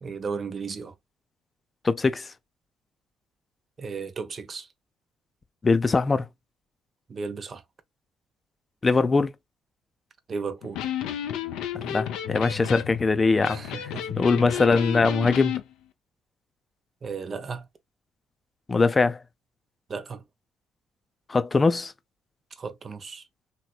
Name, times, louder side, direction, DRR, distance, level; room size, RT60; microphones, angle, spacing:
voice 1, 0.0-0.9 3.8-4.7 7.1-7.6 10.3-10.9 13.4-14.1 17.0-17.7 19.9-20.2 22.6-23.2, right 5 dB, 45° right, 0.7 m, -35 dB
voice 2, 1.8-2.3 5.6-6.3 8.8-9.3 11.8-13.8 14.2-15.5 18.7-19.2 21.3-21.9, left 4 dB, 30° left, 0.6 m, -22 dB
Electric guitar, 10.6-15.6, left 10 dB, 75° left, 0.5 m, -32 dB
3.0 x 3.0 x 2.3 m
hypercardioid pair, 50°, 0 cm